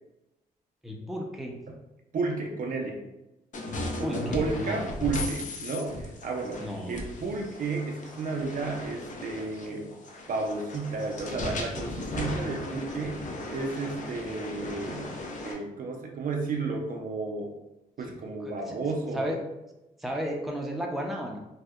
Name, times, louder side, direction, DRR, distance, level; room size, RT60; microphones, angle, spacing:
voice 1, 0.8-1.6 4.0-4.9 6.6-7.0 18.1-18.2 18.4-18.8 19.1-19.4 20.0-21.4, equal, ahead, 0 dB, 0.5 m, -33 dB
voice 2, 2.1-3.0 4.0-9.9 10.3-13.2 13.5-15.1 15.4-17.5 18.0-19.3, right 3 dB, 55° right, 2 dB, 0.4 m, -32 dB
sound 1, 3.5-15.5, left 2 dB, 50° left, 0.5 m, -36 dB
2.7 x 2.0 x 2.3 m, 0.94 s
supercardioid pair, 55°, 17 cm